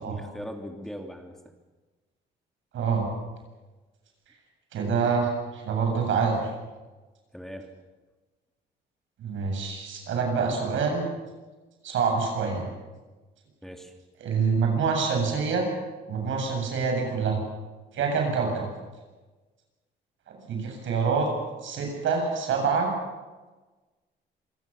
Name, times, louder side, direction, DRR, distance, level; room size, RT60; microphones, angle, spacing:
voice 1, 0.0-1.4 7.3-7.7 13.6-13.9, equal, ahead, 4 dB, 3.0 m, -39 dB
voice 2, 2.7-3.1 4.7-6.5 9.2-11.1 11.8-12.7 14.2-15.7 16.1-17.4 17.9-18.7 20.3-21.3 21.6-22.9, right 5 dB, 75° right, 3 dB, 7.8 m, -26 dB
26.5 x 18.0 x 7.2 m, 1.2 s
cardioid pair, 90°, 20 cm